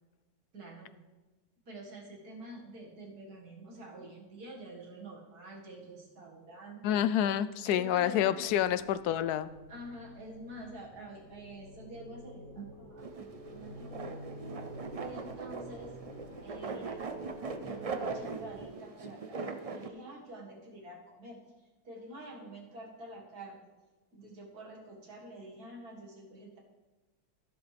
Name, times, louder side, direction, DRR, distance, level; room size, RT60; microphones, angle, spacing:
voice 1, 0.5-1.0 1.7-7.0 7.6-8.2 9.7-14.0 15.0-16.0 16.4-17.3 17.6-23.6 24.1-26.6, right 1 dB, 85° right, -1 dB, 2.5 m, -48 dB
voice 2, 6.8-9.5, left 10 dB, 85° left, 15 dB, 1.1 m, -28 dB
sound 1, 8.4-18.6, right 1 dB, 65° left, 3.2 m, -49 dB
sound 2, 13.0-19.9, right 4 dB, 50° right, 0.4 m, -40 dB
13.5 x 11.0 x 3.4 m, 1.2 s
omnidirectional pair, 1.6 m